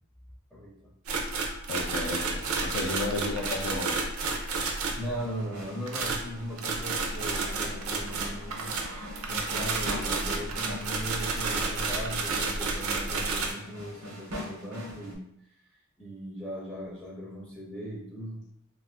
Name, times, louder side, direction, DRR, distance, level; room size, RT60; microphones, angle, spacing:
voice 1, 0.5-0.9 4.7-8.7 9.3-15.3 16.0-18.5, right 1 dB, 5° left, -5 dB, 0.4 m, -38 dB
sound 1, 1.1-5.1 5.9-13.5, right 4 dB, 65° right, 0.5 m, -31 dB
voice 2, 1.7-4.1, left 2 dB, 85° left, 4 dB, 0.4 m, -33 dB
sound 2, 4.8-15.1, left 1 dB, 85° right, 0.8 m, -43 dB
2.4 x 2.3 x 3.5 m, 0.76 s
head